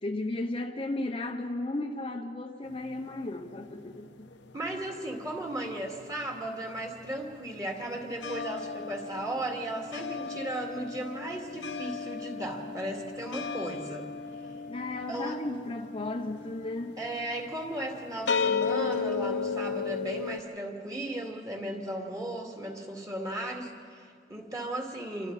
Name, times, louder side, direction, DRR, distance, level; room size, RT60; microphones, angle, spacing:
voice 1, 0.0-4.4 14.7-17.0, left 2 dB, 30° left, 0.8 m, -35 dB
sound 1, 2.7-5.4 5.6-20.4, left 5 dB, 75° left, 0.9 m, -35 dB
voice 2, 4.5-14.1 15.1-15.3 17.0-25.3, right 1 dB, 20° right, 2.4 m, -36 dB
28.0 x 24.0 x 4.1 m
head